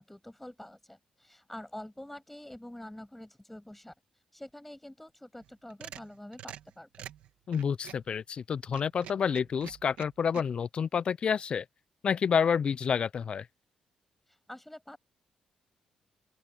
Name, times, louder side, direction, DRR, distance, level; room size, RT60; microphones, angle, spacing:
voice 1, 0.0-7.1 14.3-15.0, left 1 dB, 5° left, 7.4 m, -47 dB
sound 1, 5.4-8.1 8.6-10.4, right 11 dB, 85° right, 1.8 m, -46 dB
voice 2, 7.5-11.6 12.0-13.5, left 7 dB, 50° left, 0.4 m, -29 dB
open air
cardioid pair, 75°, 2 cm